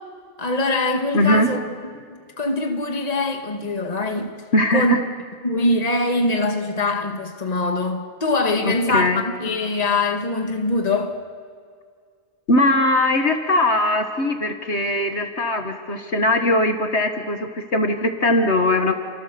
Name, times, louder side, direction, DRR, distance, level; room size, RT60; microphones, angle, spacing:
voice 1, 0.4-1.6 2.1-4.3 4.7-5.0 5.4-11.1, left 2 dB, 35° left, 1.9 m, -23 dB
voice 2, 1.1-1.5 4.5-5.0 8.6-9.2 12.5-18.9, left 1 dB, 65° left, 2.0 m, -20 dB
29.5 x 25.5 x 7.0 m
omnidirectional pair, 1.2 m